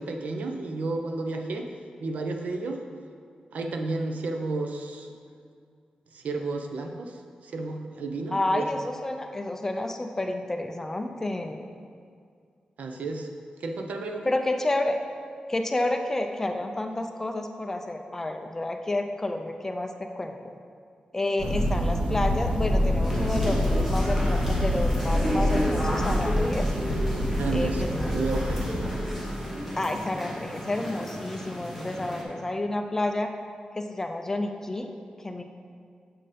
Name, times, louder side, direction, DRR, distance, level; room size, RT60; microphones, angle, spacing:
voice 1, 0.0-1.6 2.0-2.8 3.5-5.1 6.1-7.1 7.4-8.6 12.8-13.3 13.6-14.3 27.4-27.8 28.1-28.6, right 3 dB, 70° right, 4 dB, 0.6 m, -31 dB
voice 2, 8.3-11.7 14.3-15.0 15.5-20.5 21.1-26.7 27.5-28.1 29.8-33.3 33.7-35.4, left 2 dB, 15° left, 5 dB, 0.4 m, -30 dB
Thunder, 21.4-29.3, equal, 40° right, 1.1 m, -26 dB
sound 1, 23.0-32.2, equal, 10° right, 1.1 m, -33 dB
7.4 x 4.3 x 5.0 m, 2.2 s
wide cardioid pair, 175°, 3 cm